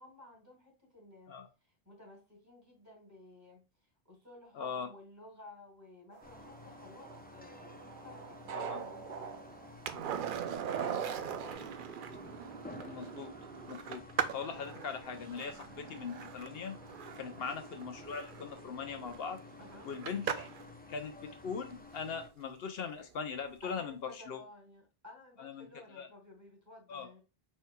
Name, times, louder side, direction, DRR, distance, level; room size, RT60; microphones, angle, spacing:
voice 1, 0.0-1.3 1.6-3.6 4.0-9.4 9.9-11.8 15.4-15.7 17.2-17.5 19.6-19.9 23.6-27.2, left 2 dB, 15° right, -1 dB, 2.4 m, -55 dB
voice 2, 4.5-4.9 8.5-8.8 12.8-13.3 13.7-14.1 14.3-16.8 17.2-19.4 19.8-20.5 20.9-24.4 25.4-25.7 26.0-26.1 26.9-27.1, left 6 dB, 75° left, 7 dB, 0.9 m, -40 dB
sound 1, 6.1-11.5, right 6 dB, 85° right, 0.9 m, -45 dB
sound 2, 6.2-22.3, left 3 dB, 15° left, 0.3 m, -52 dB
Skateboard, 9.9-20.7 23.3-23.4, right 8 dB, 60° right, 0.7 m, -40 dB
4.6 x 4.2 x 2.2 m, 0.31 s
omnidirectional pair, 1.0 m